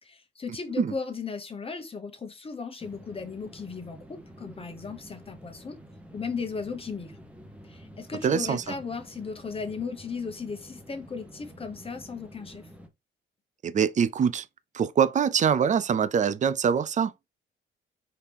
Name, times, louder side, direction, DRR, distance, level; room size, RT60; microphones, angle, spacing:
voice 1, 0.0-5.8 6.1-7.2 7.6-12.7, left 5 dB, 30° left, 1.0 m, -36 dB
sound 1, 2.8-12.9, equal, 5° right, 1.0 m, -49 dB
voice 2, 8.2-8.7 13.6-14.5 14.7-17.1, right 7 dB, 40° right, 0.5 m, -24 dB
4.8 x 2.8 x 3.5 m
cardioid pair, 90°, 20 cm